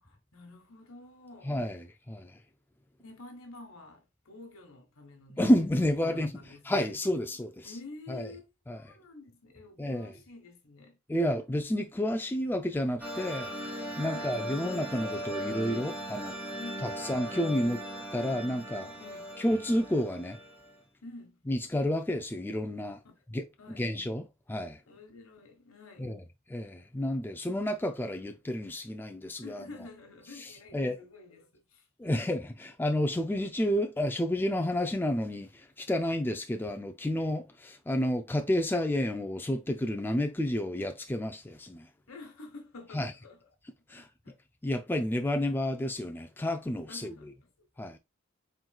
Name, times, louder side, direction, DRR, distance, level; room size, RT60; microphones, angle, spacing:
voice 1, 0.0-1.5 3.0-7.0 7.6-8.5 8.7-11.0 14.0-14.3 16.6-17.1 18.7-19.3 21.0-21.4 23.6-23.9 24.9-26.1 29.4-32.3 42.1-43.5 44.0-44.3 46.9-47.5, left 2 dB, 90° left, 1.3 m, -49 dB
voice 2, 1.4-2.3 5.4-7.7 8.1-8.3 8.7-8.8 9.8-10.1 11.1-16.3 16.8-17.8 18.1-18.9 19.4-20.4 21.5-23.0 23.3-23.4 23.8-24.8 26.0-26.2 26.5-29.7 30.4-31.0 32.0-41.9 42.9-43.1 43.9-44.1 44.6-47.1 47.8-48.0, left 1 dB, 10° left, 0.4 m, -30 dB
sound 1, 13.0-20.7, equal, 10° right, 1.3 m, -38 dB
4.4 x 3.8 x 2.3 m
head